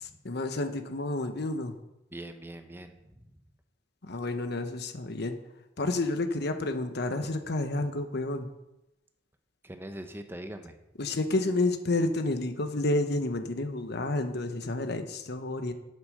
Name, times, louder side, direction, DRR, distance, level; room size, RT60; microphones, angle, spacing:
voice 1, 0.2-1.7 4.0-5.4 5.8-8.5 11.0-15.7, left 2 dB, 60° left, 8 dB, 1.1 m, -30 dB
voice 2, 2.1-3.3 9.6-10.7, right 1 dB, 10° right, 7 dB, 0.9 m, -42 dB
8.8 x 8.0 x 6.5 m, 0.93 s
head